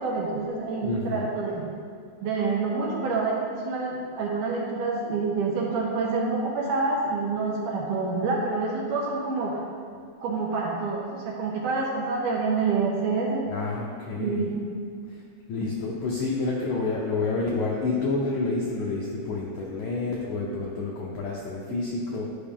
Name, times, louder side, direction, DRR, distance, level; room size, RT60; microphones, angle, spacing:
voice 1, 0.0-1.7 2.2-9.6 10.2-13.5 14.1-14.7, right 4 dB, 65° right, -3 dB, 2.2 m, -27 dB
voice 2, 0.8-1.3 13.5-14.5 15.1-15.2 15.5-22.3, left 3 dB, 90° left, -3 dB, 1.7 m, -29 dB
12.0 x 4.8 x 3.7 m, 2.1 s
omnidirectional pair, 4.6 m